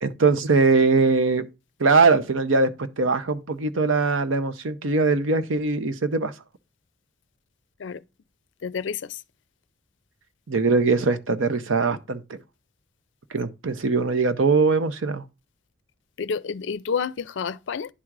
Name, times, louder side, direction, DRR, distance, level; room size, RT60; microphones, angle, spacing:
voice 1, 0.0-1.4 1.8-6.3 10.5-12.4 13.3-15.2, right 4 dB, 80° right, 0.8 m, -21 dB
voice 2, 8.6-9.0 16.2-17.9, left 6 dB, 65° left, 0.4 m, -29 dB
10.0 x 3.7 x 4.6 m
head